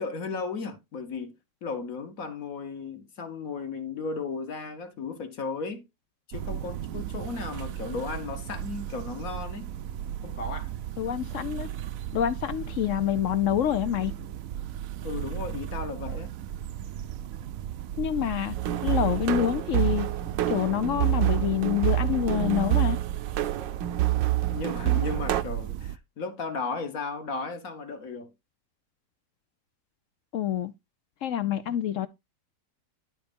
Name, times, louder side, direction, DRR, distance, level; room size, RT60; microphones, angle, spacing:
voice 1, 0.0-1.3 1.6-5.8 6.3-9.7 10.2-10.7 15.0-16.3 24.5-28.3, left 4 dB, 50° left, 1.5 m, -35 dB
sound 1, 6.3-26.0, right 11 dB, 65° right, 0.8 m, -36 dB
voice 2, 11.0-11.7 12.1-14.1 18.0-20.1 20.5-23.0 30.3-30.7 31.2-32.1, left 11 dB, 70° left, 0.7 m, -27 dB
sound 2, 18.6-25.4, right 15 dB, 80° right, 1.4 m, -27 dB
11.0 x 3.9 x 5.2 m
omnidirectional pair, 2.0 m